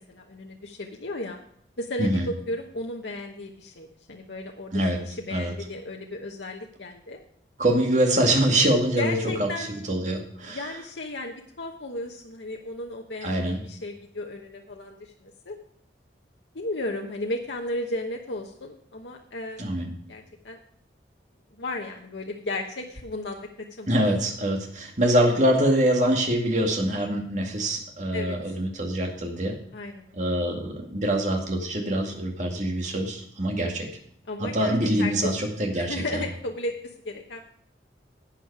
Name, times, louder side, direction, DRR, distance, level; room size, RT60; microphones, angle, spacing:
voice 1, 0.0-1.4 1.8-7.2 9.0-9.7 10.4-15.6 16.5-19.7 20.1-20.6 21.6-23.4 23.8-24.0 28.1-28.3 29.7-30.2 34.3-35.3 35.7-37.4, left 2 dB, 80° left, 1 dB, 1.1 m, -34 dB
voice 2, 7.6-10.7 13.2-13.6 19.6-19.9 23.9-29.6 30.1-33.9 34.4-36.3, right 1 dB, 40° right, 1 dB, 2.2 m, -24 dB
12.0 x 8.3 x 4.8 m, 0.65 s
head